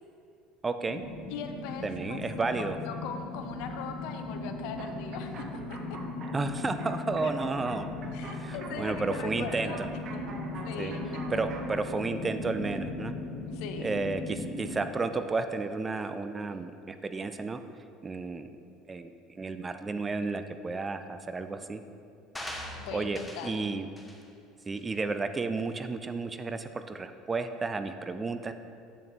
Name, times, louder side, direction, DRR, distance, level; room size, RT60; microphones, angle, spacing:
voice 1, 0.6-1.0 1.8-2.8 6.3-7.9 8.3-9.9 10.8-10.9 11.3-13.1 13.8-17.6 18.0-18.5 18.9-21.8 22.9-23.9 24.7-28.5, right 3 dB, 20° right, 9 dB, 0.4 m, -32 dB
sound 1, 0.8-14.8, left 2 dB, 90° left, 1.6 m, -38 dB
voice 2, 1.3-6.0 7.2-7.3 8.1-9.8 10.1-10.2 10.6-11.0 13.5-14.0 22.8-23.7, left 6 dB, 60° left, 6 dB, 0.6 m, -40 dB
sound 2, 4.8-11.8, right 3 dB, 45° right, 0.8 m, -45 dB
sound 3, 22.4-23.6 24.0-24.2 24.8-24.9, left 1 dB, 10° left, 0.9 m, -41 dB
7.6 x 7.1 x 3.3 m, 2.5 s
figure-of-eight pair, 65°, 0 cm